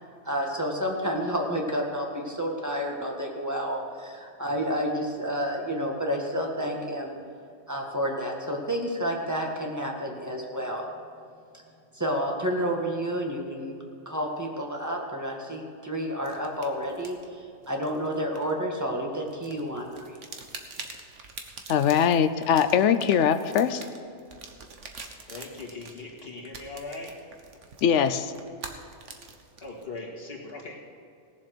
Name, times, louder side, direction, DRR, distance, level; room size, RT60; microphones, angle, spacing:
voice 1, 0.2-7.1 7.7-10.9 11.9-13.8 14.1-20.2, equal, 15° right, 0 dB, 1.8 m, -30 dB
sound 1, 16.2-18.9 19.3-29.8, right 4 dB, 90° right, 1.5 m, -45 dB
voice 2, 21.7-23.8 27.8-28.3, left 8 dB, 80° left, 11 dB, 1.0 m, -22 dB
voice 3, 25.3-27.3 29.6-30.8, left 3 dB, 55° left, -2 dB, 2.3 m, -39 dB
18.5 x 7.4 x 6.2 m, 2.5 s
omnidirectional pair, 1.2 m